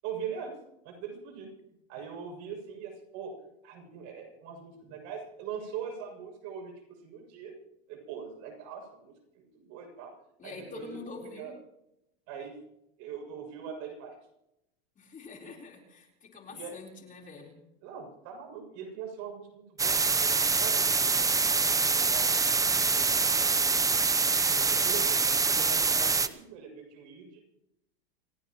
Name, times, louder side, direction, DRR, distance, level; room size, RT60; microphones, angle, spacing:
voice 1, 0.0-0.5 0.8-1.5 1.9-3.3 3.6-6.7 7.0-7.5 7.9-10.1 10.4-10.9 11.4-11.6 12.3-12.5 13.0-14.2 15.4-15.5 16.5-16.8 17.8-20.3 20.6-22.3 23.0-23.1 23.6-24.1 24.6-27.4, right 7 dB, 55° right, 3 dB, 7.0 m, -42 dB
voice 2, 10.4-11.5 15.0-17.6, left 4 dB, 25° left, 0 dB, 4.1 m, -45 dB
sound 1, 19.8-26.3, right 4 dB, 10° right, 0.8 m, -25 dB
28.0 x 17.0 x 3.1 m, 0.84 s
supercardioid pair, 115°, 31 cm